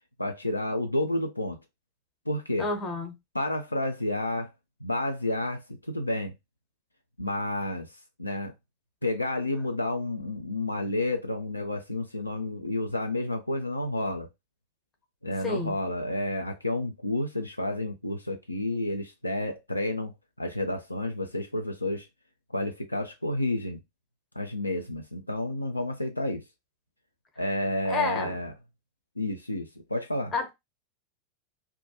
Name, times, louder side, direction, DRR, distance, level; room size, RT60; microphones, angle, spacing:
voice 1, 0.2-1.6 2.3-2.7 3.3-4.5 4.8-6.3 7.2-7.9 8.2-8.5 9.0-14.3 15.2-22.1 22.5-23.8 24.4-26.4 27.4-28.5 29.2-30.3, left 1 dB, 85° left, 0.3 m, -30 dB
voice 2, 2.6-3.2 15.4-15.8 27.9-28.4 30.3-30.5, left 4 dB, 25° left, 0.8 m, -29 dB
2.2 x 2.2 x 2.7 m
figure-of-eight pair, 90°, 0 cm